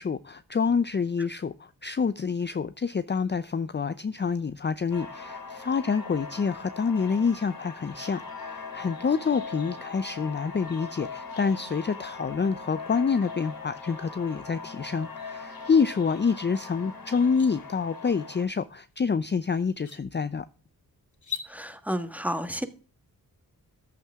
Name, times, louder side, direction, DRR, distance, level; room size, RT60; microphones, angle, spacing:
voice 1, 0.0-20.5, left 5 dB, 30° left, 0.6 m, -27 dB
sound 1, 4.9-18.5, left 4 dB, 70° left, 3.9 m, -40 dB
sound 2, 16.5-16.6 17.1-17.5 19.1-19.2 19.7-20.0 21.1-21.5, left 6 dB, 50° left, 2.6 m, -38 dB
voice 2, 21.4-22.7, equal, 5° right, 1.5 m, -31 dB
14.0 x 8.8 x 3.6 m
wide cardioid pair, 85°, 37 cm